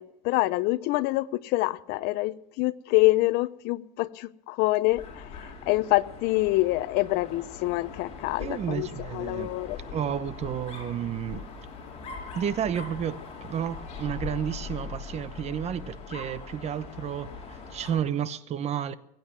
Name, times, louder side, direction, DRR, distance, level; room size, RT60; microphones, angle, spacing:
voice 1, 0.0-9.8, left 19 dB, 60° left, 0.7 m, -26 dB
Dog, 4.9-18.2, left 5 dB, 35° left, 5.0 m, -41 dB
voice 2, 8.4-9.5 9.9-11.5 12.3-18.9, right 9 dB, 35° right, 0.9 m, -31 dB
22.0 x 9.3 x 6.2 m
supercardioid pair, 130°, 19 cm